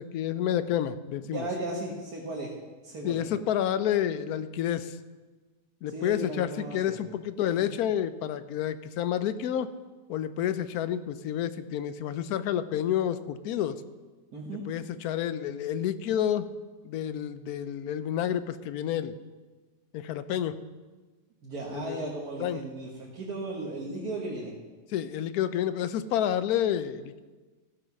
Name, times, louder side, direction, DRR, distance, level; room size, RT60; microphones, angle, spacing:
voice 1, 0.0-1.5 3.0-5.0 5.8-9.7 10.1-13.8 14.5-16.5 16.8-19.2 19.9-20.5 21.7-22.0 22.4-22.6 24.9-27.2, left 10 dB, 75° left, 13 dB, 1.1 m, -29 dB
voice 2, 1.3-2.5 2.8-3.2 5.9-7.0 14.3-14.7 21.4-24.5, right 2 dB, 70° right, -4 dB, 1.9 m, -36 dB
15.0 x 5.0 x 5.9 m, 1.3 s
omnidirectional pair, 1.6 m